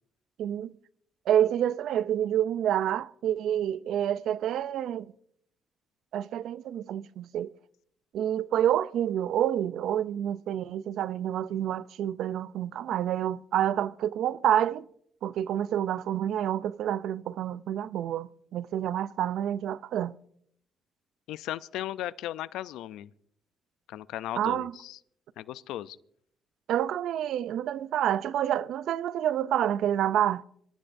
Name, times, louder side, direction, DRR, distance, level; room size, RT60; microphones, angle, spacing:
voice 1, 0.4-0.7 1.3-5.1 6.1-7.5 8.1-14.8 15.2-20.2 24.4-24.7 26.7-30.4, right 10 dB, 80° right, 0.4 m, -28 dB
voice 2, 21.3-23.1 23.9-25.0 25.4-26.0, left 13 dB, 90° left, 0.4 m, -36 dB
26.0 x 13.5 x 2.6 m
cardioid pair, 90°, 0 cm